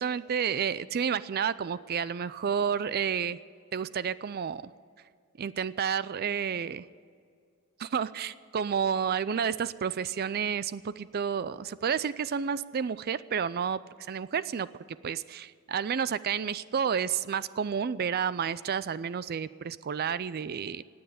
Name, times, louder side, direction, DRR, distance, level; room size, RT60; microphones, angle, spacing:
voice 1, 0.0-3.4 3.7-4.6 5.4-6.9 7.8-13.8 14.1-14.7 15.0-20.8, right 7 dB, 45° right, 17 dB, 0.4 m, -30 dB
19.0 x 7.9 x 8.7 m, 2.2 s
head